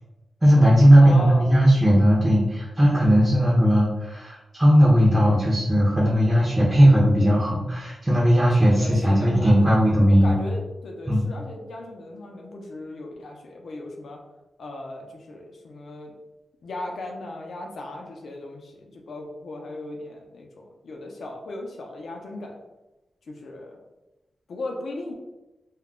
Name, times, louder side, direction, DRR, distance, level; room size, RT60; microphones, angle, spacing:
voice 1, 0.4-10.3 11.1-11.2, equal, 15° right, -6 dB, 0.5 m, -17 dB
voice 2, 1.0-1.5 8.6-9.7 10.2-14.2 14.6-16.2 16.6-22.6 23.2-23.8 24.5-25.1, left 2 dB, 65° left, 1 dB, 0.5 m, -37 dB
2.2 x 2.0 x 3.6 m, 1.0 s
wide cardioid pair, 175°, 0 cm